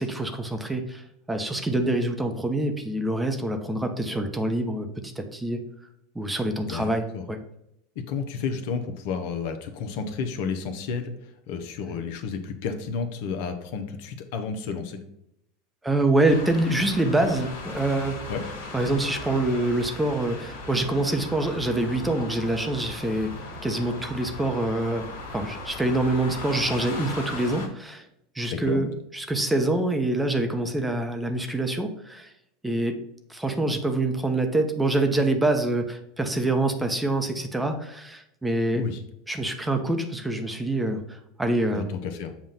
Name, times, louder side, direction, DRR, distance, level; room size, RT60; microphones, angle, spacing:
voice 1, 0.0-5.6 6.1-7.4 11.9-12.0 15.8-18.2 18.7-23.3 23.6-28.1 28.3-32.3 32.6-33.0 33.3-38.8 39.3-42.0, right 2 dB, 10° right, 5 dB, 0.8 m, -26 dB
voice 2, 6.7-7.2 8.1-15.0 18.3-18.4 28.5-28.8 38.7-39.0 41.7-42.3, left 5 dB, 65° left, 6 dB, 0.8 m, -31 dB
sound 1, 16.3-27.7, left 2 dB, 90° left, 1.8 m, -38 dB
7.2 x 2.5 x 5.6 m, 0.79 s
hypercardioid pair, 95°, 0 cm